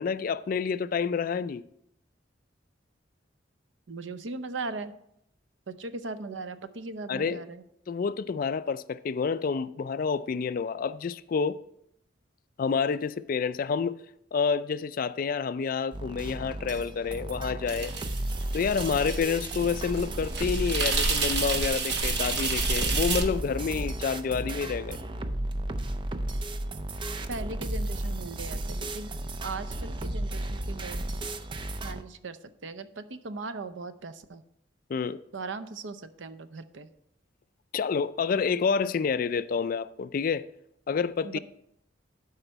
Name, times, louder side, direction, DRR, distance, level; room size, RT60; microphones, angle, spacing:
voice 1, 0.0-1.6 7.1-7.4 7.9-11.6 12.6-14.0 14.3-17.9 18.5-25.0 34.9-35.2 37.7-40.5 40.9-41.4, left 5 dB, 50° left, 0.3 m, -28 dB
voice 2, 3.9-4.9 5.7-7.6 27.3-29.1 29.4-31.0 31.8-34.4 35.3-36.9 41.2-41.4, right 3 dB, 80° right, 0.6 m, -38 dB
sound 1, 15.9-32.0, right 1 dB, 25° right, 0.5 m, -34 dB
sound 2, 17.7-23.2, right 3 dB, 60° right, 1.1 m, -30 dB
12.0 x 4.9 x 4.5 m
head